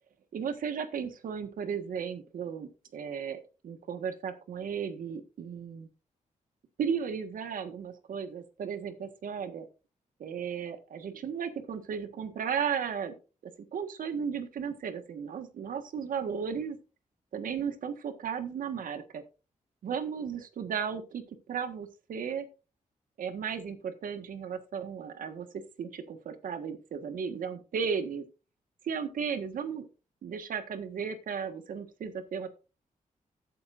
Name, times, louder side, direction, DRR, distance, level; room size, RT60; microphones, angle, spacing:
voice 1, 0.3-5.9 6.8-9.7 10.2-13.1 13.7-16.8 17.3-19.2 19.8-22.4 23.2-28.2 28.8-29.9 30.2-32.5, right 7 dB, 90° right, 8 dB, 1.6 m, -35 dB
14.5 x 8.5 x 2.6 m, 0.32 s
wide cardioid pair, 115°, 14 cm